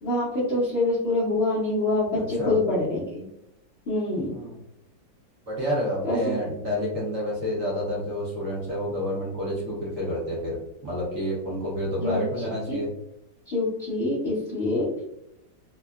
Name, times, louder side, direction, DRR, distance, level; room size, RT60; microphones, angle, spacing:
voice 1, 0.0-3.2 3.9-4.3 6.0-6.4 12.0-12.2 12.7-12.8 13.5-14.9, left 2 dB, 70° left, -7 dB, 0.6 m, -25 dB
voice 2, 2.1-2.6 4.2-4.6 5.5-12.9, equal, 55° right, -5 dB, 1.0 m, -29 dB
3.4 x 2.1 x 2.3 m, 0.81 s
omnidirectional pair, 2.1 m